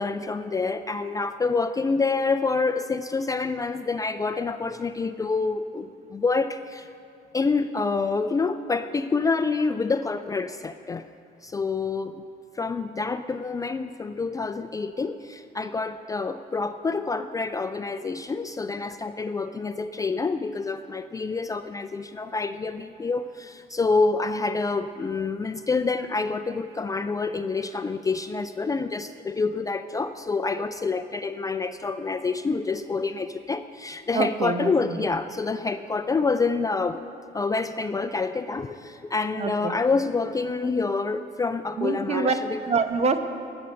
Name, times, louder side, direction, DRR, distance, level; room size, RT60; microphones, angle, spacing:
voice 1, 0.0-6.9 7.3-11.1 11.4-12.1 12.5-37.0 37.3-42.6, left 4 dB, 20° left, 10 dB, 0.4 m, -27 dB
voice 2, 34.1-35.0 39.4-39.8 41.8-42.3 42.7-43.2, right 4 dB, 40° right, 8 dB, 0.9 m, -25 dB
18.0 x 7.0 x 6.3 m, 2.5 s
cardioid pair, 110°, 17 cm